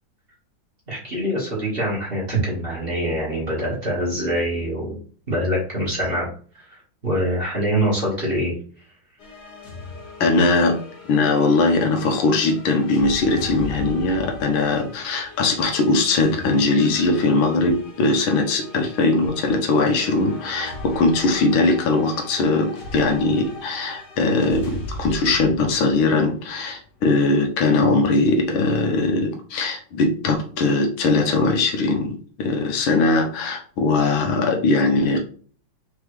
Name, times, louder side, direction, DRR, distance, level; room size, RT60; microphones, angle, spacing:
voice 1, 0.9-5.0 5.3-6.3 7.0-8.5, equal, 30° right, -5 dB, 1.7 m, -24 dB
sound 1, 9.2-26.8, left 1 dB, 55° left, 1.9 m, -38 dB
voice 2, 10.2-10.8 11.1-35.2, left 3 dB, 75° left, 3 dB, 1.6 m, -20 dB
4.6 x 3.4 x 3.2 m, 0.43 s
omnidirectional pair, 2.3 m